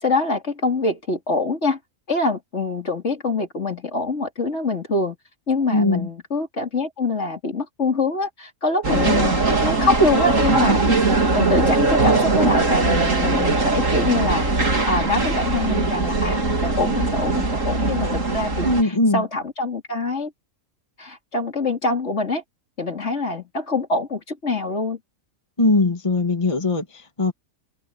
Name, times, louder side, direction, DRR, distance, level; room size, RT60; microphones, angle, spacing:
voice 1, 0.0-1.8 2.1-5.2 5.5-9.2 9.6-10.8 11.3-20.3 21.0-22.4 22.8-25.0, left 2 dB, 55° left, 3.5 m, -24 dB
voice 2, 5.7-6.1 9.0-9.4 18.6-19.2 25.6-27.3, left 2 dB, 25° left, 1.9 m, -20 dB
sound 1, 8.8-18.8, right 3 dB, 70° right, 3.6 m, -20 dB
omnidirectional pair, 1.4 m